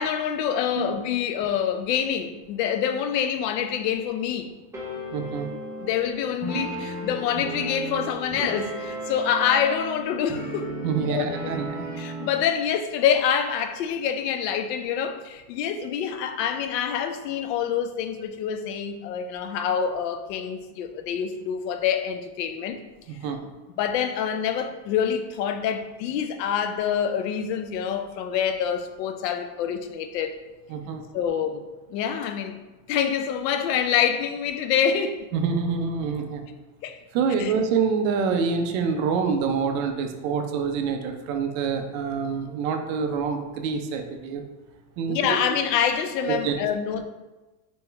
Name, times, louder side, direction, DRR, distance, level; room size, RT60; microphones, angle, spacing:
voice 1, 0.0-4.5 5.8-10.7 11.0-11.6 12.0-22.8 23.8-30.4 31.1-32.6 32.9-35.3 36.8-37.0 37.4-37.5 45.1-47.0, left 8 dB, 85° left, 7 dB, 0.7 m, -26 dB
sound 1, 4.7-12.5, right 1 dB, 5° right, 0.8 m, -35 dB
voice 2, 5.1-5.5 6.5-6.7 10.8-11.9 23.1-23.4 30.7-31.0 35.3-36.5 37.1-44.4 45.0-45.6 46.2-46.5, right 5 dB, 55° right, 5 dB, 0.7 m, -26 dB
4.1 x 3.4 x 3.3 m, 1.1 s
supercardioid pair, 145°, 48 cm